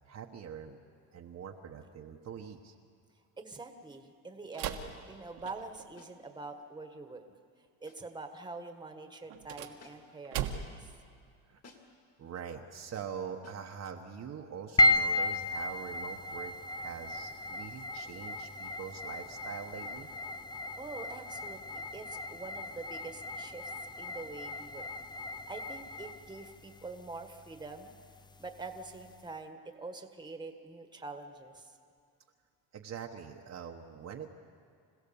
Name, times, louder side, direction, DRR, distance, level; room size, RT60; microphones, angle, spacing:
voice 1, 0.0-0.8 1.1-2.7 11.5-11.6 12.2-20.1 32.7-34.3, right 7 dB, 40° right, 2 dB, 1.2 m, -43 dB
voice 2, 3.4-7.2 7.8-10.5 20.8-23.7 24.0-24.9 25.5-27.9 28.4-31.8, right 3 dB, 10° right, 6 dB, 1.5 m, -45 dB
sound 1, 4.5-5.9 9.3-10.9, right 9 dB, 75° right, 1.7 m, -39 dB
sound 2, 6.0-6.3 7.9-8.2 9.8-10.2 11.6-12.1 13.4-13.8 15.1-15.4, left 3 dB, 35° left, 2.8 m, -58 dB
sound 3, 14.8-29.2, left 1 dB, 10° left, 0.5 m, -35 dB
26.5 x 16.0 x 7.1 m, 2.2 s
cardioid pair, 115°, 42 cm